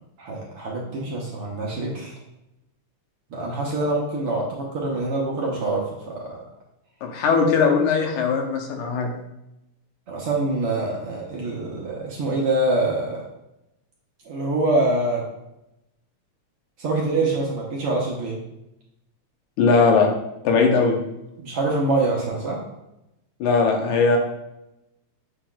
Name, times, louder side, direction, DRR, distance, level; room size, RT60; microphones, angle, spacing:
voice 1, 0.2-2.2 3.3-6.4 10.1-13.2 14.3-15.2 16.8-18.4 21.4-22.6, right 2 dB, 60° right, -3 dB, 1.6 m, -25 dB
voice 2, 7.0-9.1 19.6-20.1 20.4-21.0 23.4-24.2, left 4 dB, 85° left, 2 dB, 2.4 m, -19 dB
7.3 x 5.7 x 2.4 m, 0.89 s
omnidirectional pair, 3.4 m